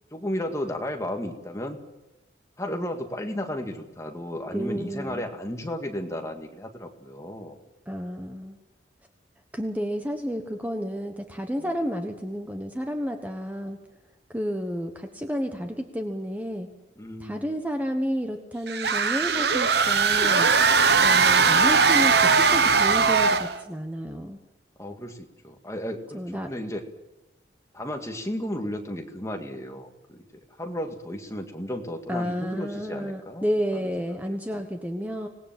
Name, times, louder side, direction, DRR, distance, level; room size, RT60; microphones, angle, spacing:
voice 1, 0.1-1.8 2.6-7.6 11.6-11.7 17.0-17.4 24.8-26.8 27.7-30.2 30.6-33.4 33.7-33.8 34.3-34.4, left 1 dB, 15° left, 3 dB, 2.1 m, -34 dB
voice 2, 4.5-5.2 7.9-8.6 9.5-13.8 14.3-16.7 17.2-20.5 21.0-24.4 26.1-26.5 32.1-35.3, equal, 10° right, 5 dB, 1.2 m, -31 dB
sound 1, 18.7-23.6, right 5 dB, 60° right, 1.1 m, -20 dB
26.0 x 19.0 x 7.6 m, 0.96 s
head